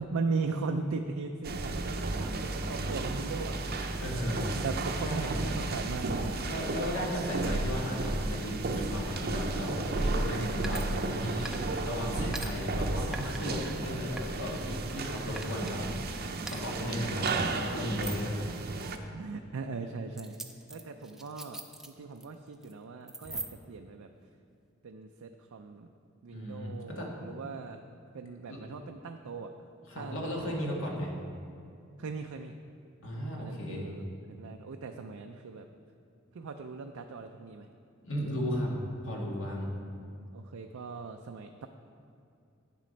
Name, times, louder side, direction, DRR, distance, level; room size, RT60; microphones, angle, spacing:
voice 1, 0.0-3.6 4.5-6.4 10.6-11.0 18.8-20.4 20.7-21.6 22.0-23.4 23.7-24.1 24.8-25.9 26.2-27.8 28.1-29.5 29.9-30.5 32.0-32.5 33.4-34.0 34.4-35.7 36.3-37.7 40.3-41.7, right 4 dB, 85° right, 4 dB, 0.5 m, -38 dB
sound 1, 1.4-19.0, right 2 dB, 50° right, 0.7 m, -33 dB
voice 2, 4.0-4.6 5.0-5.4 6.5-17.3 17.6-18.4 26.3-27.1 28.5-28.6 29.9-31.1 33.0-33.9 38.0-38.7 39.0-39.7, equal, 65° left, -2 dB, 1.8 m, -35 dB
sound 2, 10.6-11.2 11.4-11.9 12.3-12.5 13.1-13.7 14.2-15.0 15.4-15.8 16.4-16.6 17.3-17.4 17.9-18.3 18.8-19.0 20.1-22.2 22.5-22.7 23.1-23.8, right 2 dB, ahead, 0.5 m, -42 dB
9.3 x 7.5 x 5.2 m, 2.5 s
head